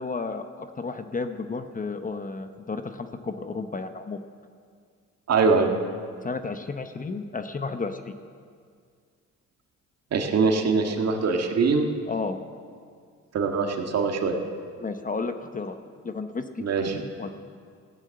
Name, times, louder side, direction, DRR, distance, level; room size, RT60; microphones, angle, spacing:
voice 1, 0.0-4.2 6.2-8.0 12.1-12.4 14.8-15.8 16.0-16.6 17.2-17.3, left 4 dB, 25° left, 8 dB, 0.9 m, -32 dB
voice 2, 5.3-5.7 10.1-11.9 13.3-14.4 16.6-17.0, right 4 dB, 55° right, 3 dB, 1.9 m, -23 dB
15.0 x 9.8 x 7.7 m, 2.1 s
cardioid pair, 90°, 30 cm